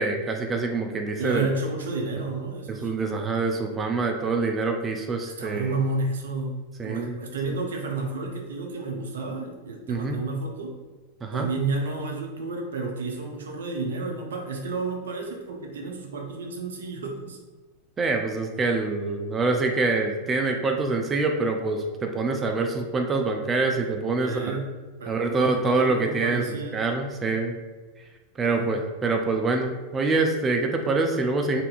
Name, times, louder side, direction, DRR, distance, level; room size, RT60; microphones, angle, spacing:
voice 1, 0.0-1.5 2.8-5.7 6.8-7.2 9.9-10.1 11.2-11.5 18.0-24.6 25.1-27.6 28.4-31.6, right 3 dB, 20° right, 3 dB, 0.4 m, -25 dB
voice 2, 1.2-2.9 5.2-6.6 6.8-10.7 11.3-17.4 24.2-26.8 28.4-28.7, right 3 dB, 70° right, 1 dB, 0.7 m, -31 dB
4.1 x 2.6 x 2.5 m, 1.3 s
figure-of-eight pair, 90°, 0 cm